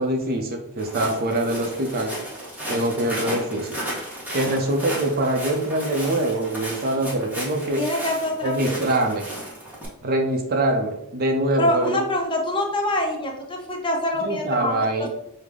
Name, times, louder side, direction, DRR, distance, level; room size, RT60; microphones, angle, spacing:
voice 1, 0.0-2.1 2.7-3.8 4.3-7.8 8.4-9.3 10.0-12.0 14.2-15.1, right 1 dB, 45° right, 3 dB, 0.5 m, -24 dB
Walk footsteps, 0.8-9.9, right 1 dB, 5° right, 0.9 m, -34 dB
voice 2, 7.8-8.8 11.6-14.9, left 1 dB, 20° left, 1 dB, 0.6 m, -25 dB
5.0 x 2.1 x 3.5 m, 0.83 s
head